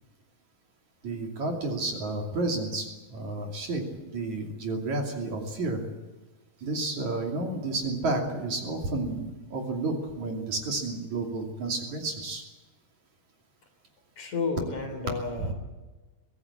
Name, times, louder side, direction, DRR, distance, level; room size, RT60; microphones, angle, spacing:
voice 1, 1.0-3.8 4.1-5.8 6.6-12.4 15.4-15.5, right 2 dB, 50° right, 2 dB, 3.9 m, -31 dB
voice 2, 14.2-15.5, left 4 dB, 50° left, 5 dB, 4.5 m, -31 dB
23.5 x 16.0 x 8.6 m, 1.2 s
omnidirectional pair, 4.4 m